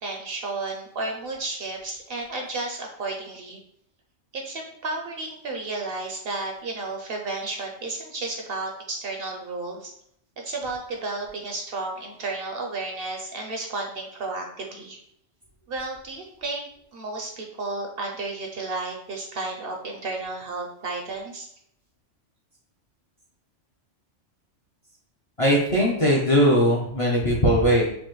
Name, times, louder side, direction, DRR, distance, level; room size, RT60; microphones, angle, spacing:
voice 1, 0.0-3.6 4.3-9.9 10.4-15.0 15.7-21.5, right 3 dB, 60° right, 1 dB, 0.7 m, -32 dB
voice 2, 25.4-27.8, equal, 40° left, -3 dB, 0.5 m, -19 dB
5.2 x 2.1 x 3.1 m, 0.71 s
omnidirectional pair, 1.3 m